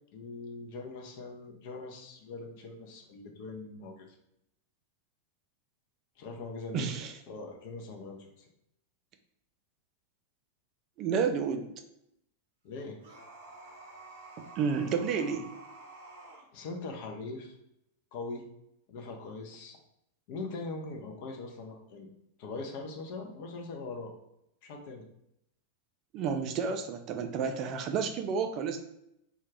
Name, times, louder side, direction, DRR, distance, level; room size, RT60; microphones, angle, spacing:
voice 1, 0.1-4.1 6.2-8.5 12.6-13.0 16.5-17.5 18.1-18.4 18.9-19.8 20.3-22.1 22.4-24.1 24.6-25.1, left 3 dB, 50° left, 2 dB, 0.6 m, -41 dB
voice 2, 6.7-7.1 11.0-11.7 14.4-15.5 26.1-28.8, right 6 dB, 35° right, 6 dB, 0.3 m, -31 dB
sound 1, 13.0-16.5, right 2 dB, 60° right, 0.7 m, -50 dB
2.4 x 2.2 x 3.2 m, 0.79 s
figure-of-eight pair, 90°, 0 cm